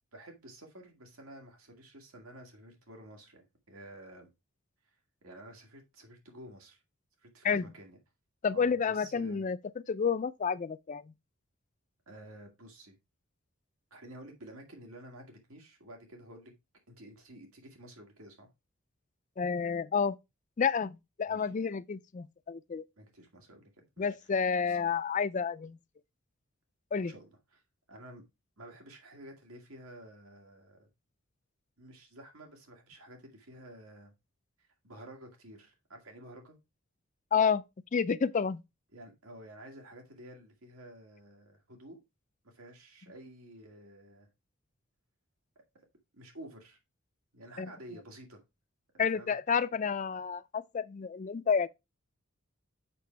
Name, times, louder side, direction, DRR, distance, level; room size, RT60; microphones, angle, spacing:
voice 1, 0.1-4.3 5.2-6.8 7.2-8.0 8.5-9.4 12.1-13.0 13.9-16.5 16.9-18.5 21.3-21.5 23.0-24.1 24.6-24.8 27.1-27.6 27.9-28.2 28.6-30.9 31.8-34.1 34.8-36.6 38.9-42.0 42.4-44.3 46.1-46.8 47.3-48.4 48.9-49.4 49.9-50.0, right 1 dB, 90° right, 2.2 m, -51 dB
voice 2, 8.4-9.6 9.9-11.1 19.4-20.2 20.6-22.8 24.0-25.8 26.9-27.1 37.3-37.6 37.9-38.6 47.6-47.7 49.0-51.7, left 6 dB, 35° left, 0.4 m, -30 dB
6.7 x 6.1 x 3.3 m
head